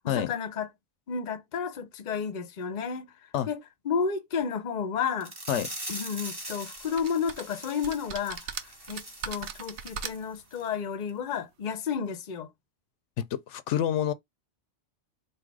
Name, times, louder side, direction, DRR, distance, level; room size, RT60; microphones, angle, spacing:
voice 1, 0.0-0.7 1.1-3.1 3.5-3.6 3.8-5.3 5.9-8.5 8.9-12.5, left 6 dB, 45° left, 0.7 m, -31 dB
sound 1, 5.2-10.2 10.5-10.7 11.1-11.2, right 1 dB, 20° right, 1.3 m, -42 dB
sound 2, 7.0-7.4 7.8-10.4, right 7 dB, 70° right, 1.0 m, -38 dB
voice 2, 13.2-14.1, left 10 dB, 80° left, 0.9 m, -28 dB
3.9 x 2.6 x 4.7 m
omnidirectional pair, 1.2 m